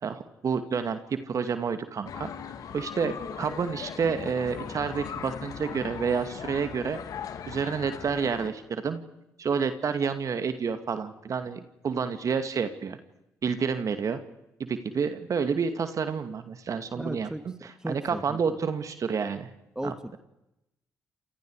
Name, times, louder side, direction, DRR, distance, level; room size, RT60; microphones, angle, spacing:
voice 1, 0.0-2.3 2.7-7.0 7.5-9.0 9.4-13.0 13.4-14.2 14.6-19.5 19.8-19.9, right 6 dB, 55° right, 9 dB, 2.3 m, -29 dB
sound 1, 2.1-8.5, left 7 dB, 60° left, 2.4 m, -39 dB
voice 2, 17.0-17.4 17.8-18.4 19.8-20.2, right 1 dB, 10° right, 10 dB, 2.3 m, -35 dB
29.5 x 27.0 x 4.9 m, 0.88 s
hypercardioid pair, 45°, 7 cm